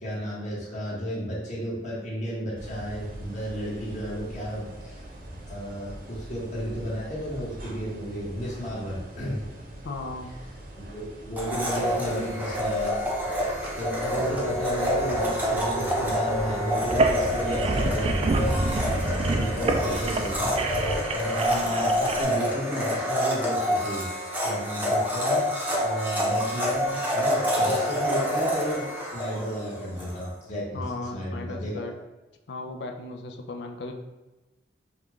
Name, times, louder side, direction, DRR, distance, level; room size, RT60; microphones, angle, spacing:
voice 1, 0.0-5.0 5.5-9.4 10.8-13.2 13.7-20.6 21.1-24.1 24.4-25.5 25.8-31.8, equal, 40° left, -6 dB, 1.4 m, -33 dB
sound 1, 2.6-21.0, right 1 dB, 50° right, 0.8 m, -37 dB
voice 2, 9.8-10.4 30.7-31.9 32.5-34.0, left 2 dB, 65° left, 4 dB, 0.5 m, -36 dB
Domestic sounds home sounds, 11.4-30.1, equal, 10° right, 0.7 m, -28 dB
sound 2, 16.8-22.2, right 3 dB, 30° right, 0.3 m, -28 dB
5.6 x 2.4 x 3.1 m, 1.1 s
head